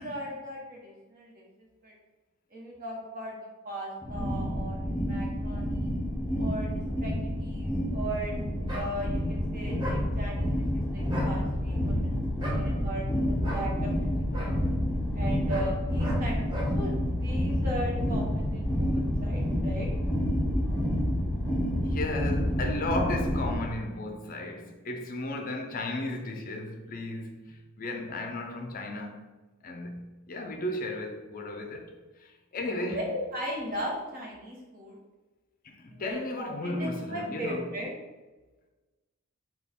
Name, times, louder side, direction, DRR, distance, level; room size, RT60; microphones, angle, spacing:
voice 1, 0.0-1.9 2.5-5.9 6.4-8.3 8.7-13.9 14.4-14.5 15.1-19.9 32.9-35.0 35.9-37.9, equal, 40° right, 1.2 m, -38 dB
sound 1, 4.0-23.5, equal, 10° left, 0.8 m, -29 dB
sound 2, 8.7-8.9 9.8-10.0 11.0-11.3 12.4-12.6 13.4-13.7 14.3-14.5 15.5-15.7 16.0-16.2 16.5-16.7, right 1 dB, 20° right, 1.0 m, -36 dB
voice 2, 21.8-29.3 29.6-33.1 35.6-37.7, left 2 dB, 40° left, 0.5 m, -35 dB
6.0 x 2.4 x 3.5 m
head